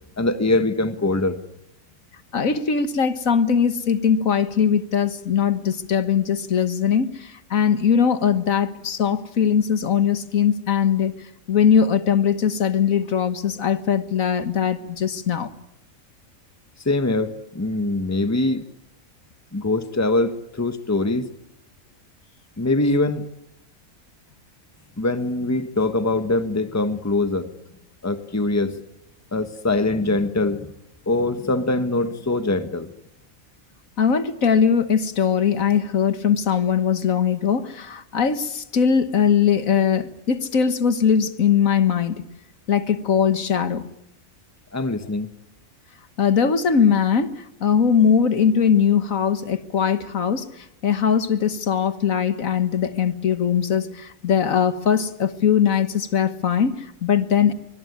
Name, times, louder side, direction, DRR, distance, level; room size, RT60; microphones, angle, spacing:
voice 1, 0.2-1.4 16.8-18.6 19.5-21.3 22.6-23.3 25.0-27.5 28.0-28.8 29.3-30.7 31.1-32.9 44.7-45.3, left 2 dB, 10° left, 9 dB, 1.2 m, -23 dB
voice 2, 2.3-11.2 11.5-15.5 34.0-42.2 42.7-43.8 46.2-50.5 50.8-57.5, left 7 dB, 80° left, 11 dB, 1.8 m, -20 dB
24.5 x 22.0 x 9.7 m, 0.86 s
omnidirectional pair, 1.4 m